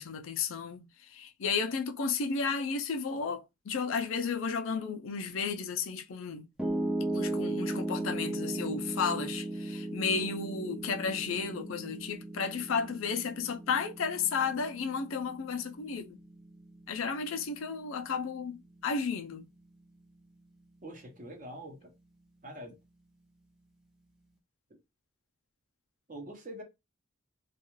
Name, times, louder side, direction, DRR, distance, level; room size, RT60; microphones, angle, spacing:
voice 1, 0.0-6.5 7.1-16.2 16.9-19.5, left 5 dB, 75° left, 0.4 m, -33 dB
Piano, 6.6-18.8, right 1 dB, 5° right, 0.4 m, -37 dB
voice 2, 20.8-21.9 22.4-22.8 26.1-26.6, right 1 dB, 40° right, 0.8 m, -44 dB
2.3 x 2.3 x 3.0 m
head